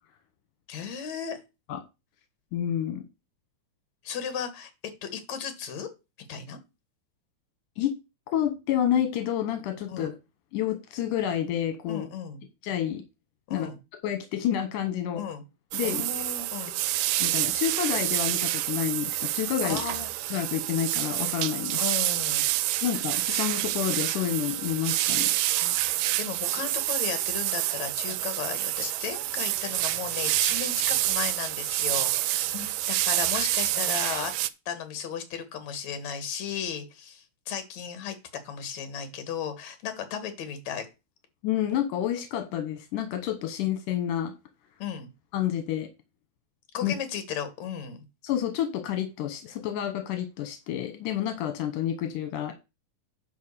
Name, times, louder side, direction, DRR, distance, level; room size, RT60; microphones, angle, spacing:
voice 1, 0.7-1.4 4.0-4.7 5.0-5.9 6.3-6.6 9.9-10.1 11.9-12.4 13.5-13.8 15.1-15.4 15.8-16.8 19.6-20.1 21.8-22.4 22.8-22.9 23.3-23.5 25.6-25.9 26.2-34.3 34.7-38.2 38.4-40.9 44.8-45.1 46.7-48.0, left 8 dB, 60° left, 8 dB, 2.8 m, -35 dB
voice 2, 2.5-3.0 7.8-7.9 8.3-10.1 10.5-12.1 12.6-13.0 13.5-13.7 14.0-15.2 15.7-16.0 17.2-19.8 20.3-21.8 22.8-25.3 32.5-32.7 41.4-44.3 45.3-45.9 46.8-46.9 48.2-52.5, left 10 dB, 85° left, 7 dB, 2.5 m, -29 dB
sound 1, 15.7-34.5, right 16 dB, 80° right, 2.1 m, -28 dB
10.5 x 3.6 x 6.6 m, 0.27 s
omnidirectional pair, 3.7 m